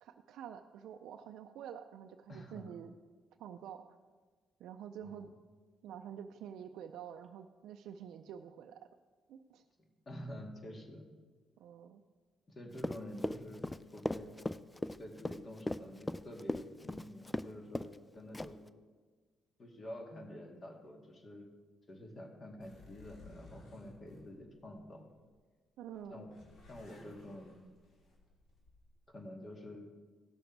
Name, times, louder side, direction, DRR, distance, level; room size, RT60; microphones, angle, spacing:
voice 1, 0.0-2.9 3.4-3.8 4.6-5.3 5.8-8.8 9.3-9.6 11.6-12.0 25.8-26.3, right 9 dB, 85° right, 5 dB, 0.4 m, -48 dB
voice 2, 2.3-2.7 5.0-5.3 9.8-11.0 12.5-13.7 13.9-14.3 15.0-18.6 19.6-21.5 21.9-25.0 26.1-26.3 26.7-27.6 29.1-29.9, left 1 dB, 40° left, 2 dB, 2.2 m, -48 dB
Run, 12.8-17.5 17.7-18.0 18.3-18.7, left 1 dB, 15° left, 0.4 m, -37 dB
sound 1, 22.6-25.3 25.8-29.1, left 2 dB, 70° left, 2.9 m, -59 dB
16.0 x 6.5 x 4.6 m, 1.4 s
cardioid pair, 90°, 0 cm